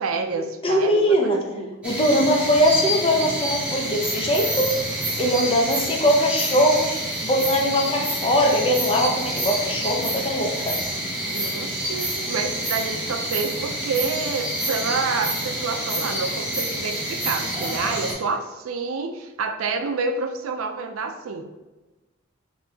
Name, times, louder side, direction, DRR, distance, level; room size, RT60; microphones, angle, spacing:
voice 1, 0.0-1.7 11.3-21.4, right 4 dB, 80° right, 6 dB, 0.4 m, -28 dB
voice 2, 0.6-1.4 1.8-4.7 5.2-6.9 7.2-10.7, equal, 25° left, 1 dB, 0.6 m, -21 dB
sound 1, 1.8-18.1, right 1 dB, 5° right, 1.1 m, -28 dB
4.4 x 3.1 x 2.7 m, 1.1 s
head